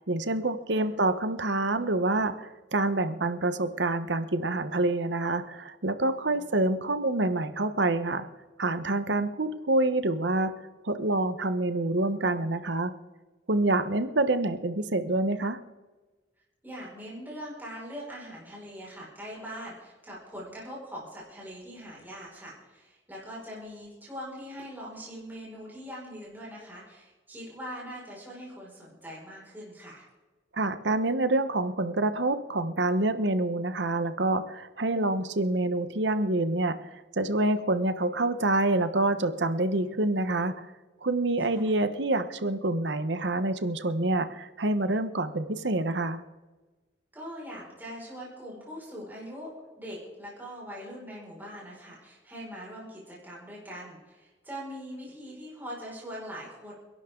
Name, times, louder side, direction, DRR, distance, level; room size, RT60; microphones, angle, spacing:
voice 1, 0.1-8.3 8.6-10.5 10.8-12.9 13.5-15.6 30.5-36.8 37.1-40.7 41.0-46.2, right 2 dB, 70° right, 11 dB, 1.1 m, -27 dB
voice 2, 16.6-30.0 41.5-41.7 47.1-49.5 49.8-56.7, equal, 10° right, -5 dB, 5.6 m, -42 dB
30.0 x 11.5 x 3.9 m, 1.2 s
head